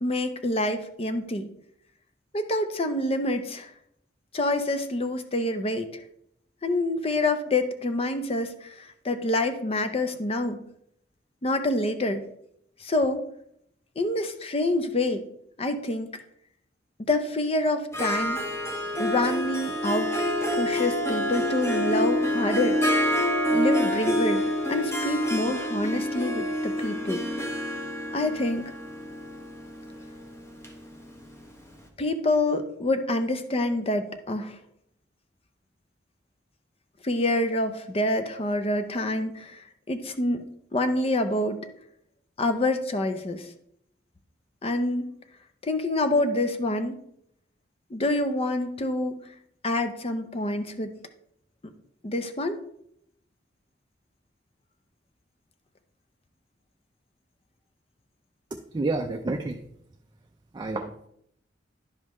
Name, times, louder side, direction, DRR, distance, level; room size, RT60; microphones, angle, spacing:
voice 1, 0.0-1.5 2.3-3.7 4.3-6.0 6.6-10.6 11.4-12.2 12.8-13.2 14.0-15.2 15.6-16.1 17.0-18.4 19.0-20.1 20.5-22.8 23.5-24.4 24.7-27.2 28.1-28.7 32.0-34.6 37.0-40.4 40.7-41.6 42.4-43.5 44.6-45.1 45.6-47.0 47.9-49.2 49.6-50.9 52.0-52.6, left 1 dB, 35° left, 8 dB, 0.6 m, -27 dB
Harp, 17.9-31.5, left 1 dB, 15° left, 1.0 m, -27 dB
voice 2, 58.7-59.6 60.5-61.1, right 3 dB, 25° right, 4 dB, 0.4 m, -29 dB
10.5 x 5.4 x 3.1 m, 0.72 s
head